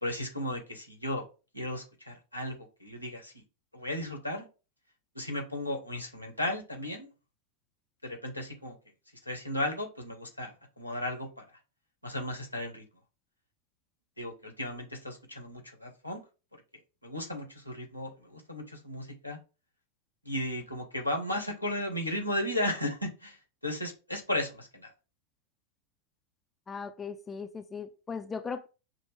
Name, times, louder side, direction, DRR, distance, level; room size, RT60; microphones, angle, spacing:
voice 1, 0.0-1.2 1.5-3.4 3.7-4.5 5.1-7.1 8.0-8.8 9.3-11.4 12.0-12.8 14.2-16.2 17.0-19.4 20.2-23.4 23.6-24.9, left 1 dB, 90° left, 1.1 m, -35 dB
voice 2, 26.7-28.7, left 5 dB, 15° left, 0.4 m, -38 dB
6.3 x 2.1 x 3.4 m
figure-of-eight pair, 90°, 0 cm